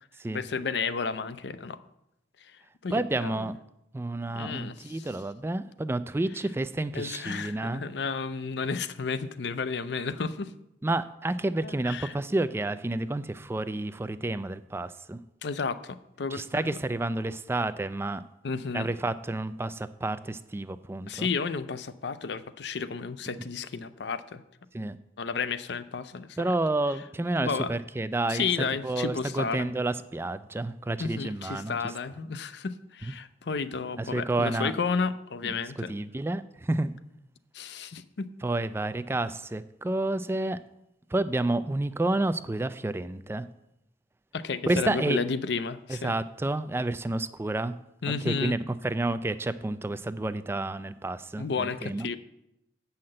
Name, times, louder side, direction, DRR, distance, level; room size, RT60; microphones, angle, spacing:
voice 1, 0.3-1.8 2.4-3.4 4.3-5.1 6.9-10.5 11.6-12.1 15.4-16.8 18.4-18.9 21.1-24.4 25.2-26.5 27.4-27.7 28.3-29.7 31.0-35.9 37.5-38.3 44.3-46.1 48.0-48.6 51.4-52.2, left 5 dB, 65° left, 13 dB, 0.5 m, -32 dB
voice 2, 2.9-3.5 3.9-7.8 10.8-15.2 16.3-18.2 18.7-21.3 24.7-25.0 26.4-28.5 28.8-31.9 34.0-34.7 35.4-35.6 35.9-36.9 38.4-40.6 41.1-43.5 44.7-45.2 45.9-47.8 48.2-52.1, right 2 dB, 15° right, 13 dB, 0.3 m, -30 dB
7.5 x 5.7 x 7.7 m, 0.85 s
head